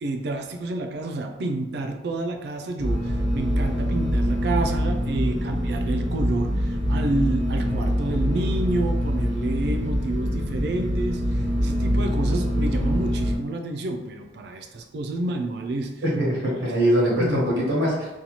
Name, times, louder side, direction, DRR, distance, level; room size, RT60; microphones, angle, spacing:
voice 1, 0.0-16.0 17.2-17.6, right 2 dB, 55° right, 4 dB, 0.3 m, -29 dB
sound 1, 2.8-13.4, equal, 35° left, 0.6 m, -24 dB
voice 2, 16.0-18.1, equal, 90° right, -5 dB, 0.9 m, -22 dB
2.8 x 2.2 x 2.9 m, 1.1 s
head